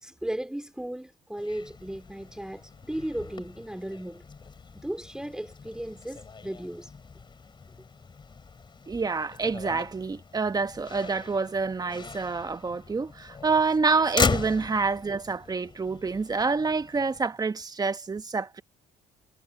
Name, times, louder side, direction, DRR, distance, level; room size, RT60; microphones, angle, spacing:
voice 1, 0.0-4.2 4.7-6.9, right 1 dB, 5° right, 2.9 m, -36 dB
Motor vehicle (road), 1.4-17.2, left 5 dB, 30° left, 3.1 m, -37 dB
voice 2, 8.9-18.6, right 4 dB, 20° right, 1.2 m, -27 dB
cardioid pair, 110°, 17 cm